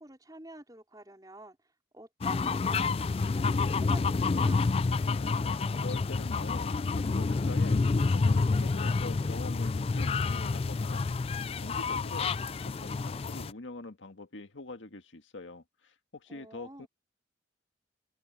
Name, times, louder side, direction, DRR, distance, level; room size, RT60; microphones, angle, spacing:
voice 1, 0.0-1.6 1.9-4.7 16.3-16.9, right 1 dB, 20° right, 4.7 m, -48 dB
sound 1, 2.2-13.5, left 4 dB, 30° left, 0.3 m, -28 dB
voice 2, 5.1-11.0 11.4-12.3 12.6-16.9, left 2 dB, 85° left, 1.8 m, -44 dB
open air
head